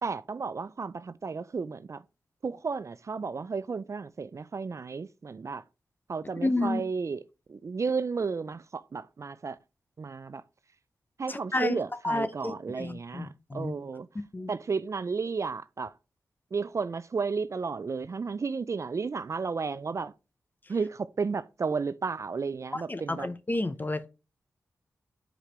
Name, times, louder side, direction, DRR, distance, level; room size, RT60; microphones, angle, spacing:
voice 1, 0.0-2.0 2.4-5.6 6.1-7.2 7.5-9.6 10.0-10.4 11.2-14.1 14.5-15.9 16.5-20.1 20.7-23.3, right 5 dB, 50° right, 0.4 m, -33 dB
voice 2, 6.4-6.8 11.3-11.8 12.0-13.7 14.3-14.5 22.7-24.1, left 2 dB, 30° left, 0.7 m, -31 dB
5.1 x 4.9 x 4.3 m
cardioid pair, 50°, 7 cm